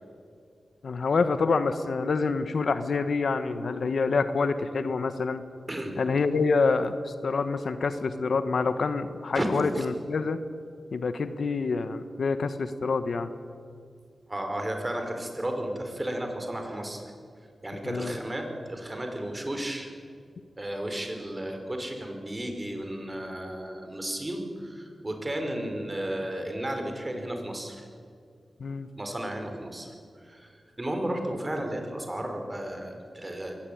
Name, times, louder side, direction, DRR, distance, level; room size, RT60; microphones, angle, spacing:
voice 1, 0.8-5.4 6.0-10.4 10.9-13.3 17.8-18.1 28.6-28.9, left 4 dB, 75° left, 11 dB, 1.3 m, -27 dB
voice 2, 14.3-17.0 17.6-19.9 20.6-27.9 28.9-33.5, right 1 dB, 25° right, 4 dB, 5.1 m, -33 dB
23.0 x 19.0 x 9.4 m, 2.3 s
cardioid pair, 65°, 0 cm